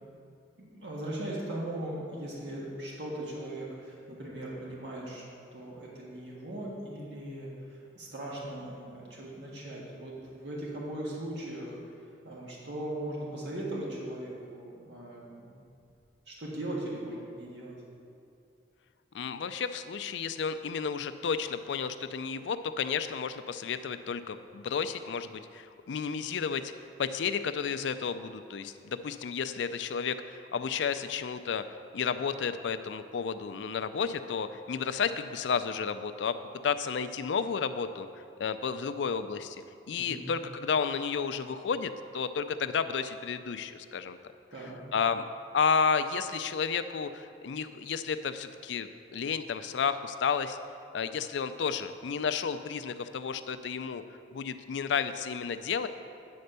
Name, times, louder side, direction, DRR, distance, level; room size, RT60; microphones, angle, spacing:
voice 1, 0.6-5.2 5.5-11.8 12.2-15.6 16.3-17.8 40.0-40.3 44.5-44.8, right 1 dB, 75° right, -5 dB, 1.7 m, -39 dB
voice 2, 19.1-26.7 27.0-31.6 31.9-36.4 36.6-38.1 38.4-39.6 39.9-44.2 44.9-45.3 45.5-50.6 50.9-54.0 54.3-55.9, left 6 dB, 85° left, 11 dB, 0.4 m, -32 dB
9.4 x 4.4 x 6.7 m, 2.5 s
head